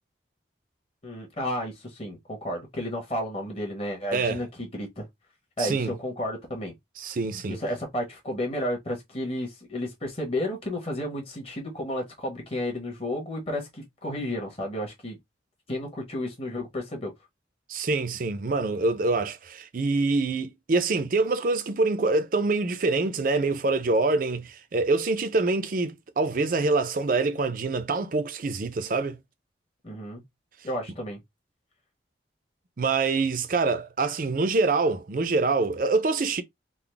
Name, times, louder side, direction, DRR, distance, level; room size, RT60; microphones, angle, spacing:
voice 1, 1.0-5.1 5.6-6.7 7.5-15.2 15.7-17.1 29.8-30.2 30.6-31.2, left 1 dB, 35° left, 1.2 m, -32 dB
voice 2, 5.6-5.9 7.0-7.6 17.7-29.2 32.8-36.4, right 3 dB, 50° right, 0.5 m, -25 dB
3.8 x 2.1 x 3.3 m
head